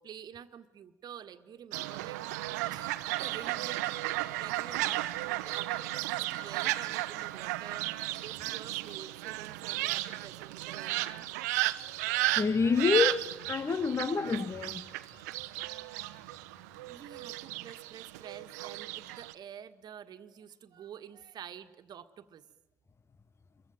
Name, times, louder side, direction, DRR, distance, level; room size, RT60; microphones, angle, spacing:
voice 1, 0.0-2.2 2.7-3.9 4.4-7.9 8.2-11.3 16.9-22.4, right 9 dB, 50° right, 1.7 m, -48 dB
Fowl, 1.7-19.3, right 18 dB, 75° right, 0.9 m, -34 dB
voice 2, 12.4-14.8, left 5 dB, 30° left, 1.0 m, -28 dB
27.5 x 23.5 x 9.2 m
hypercardioid pair, 55°, 9 cm